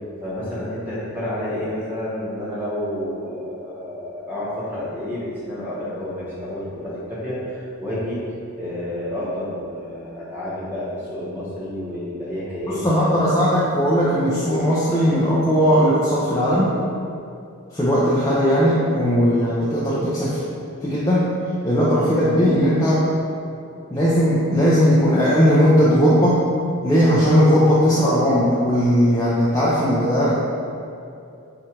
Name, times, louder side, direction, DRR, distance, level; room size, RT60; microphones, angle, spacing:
voice 1, 0.2-8.2 8.6-13.1, left 1 dB, 10° right, -11 dB, 1.2 m, -30 dB
voice 2, 12.7-16.8 17.7-20.4 20.8-21.3 21.6-23.1 23.9-26.5 26.8-30.3, equal, 15° left, -9 dB, 0.4 m, -18 dB
4.4 x 2.5 x 4.4 m, 2.6 s
head